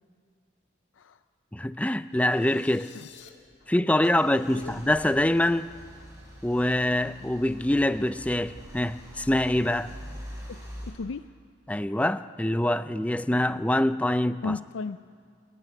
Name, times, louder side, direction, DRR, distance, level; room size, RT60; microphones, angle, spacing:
voice 1, 1.5-2.9 3.7-5.7 6.4-9.9 11.7-14.6, left 1 dB, 5° left, 0.4 m, -25 dB
sound 1, 2.1-3.3, left 8 dB, 65° left, 1.9 m, -51 dB
Car / Engine starting / Idling, 3.3-10.9, equal, 15° right, 6.3 m, -44 dB
voice 2, 10.5-11.3 14.4-15.0, left 4 dB, 90° left, 0.5 m, -35 dB
28.5 x 12.5 x 9.2 m
head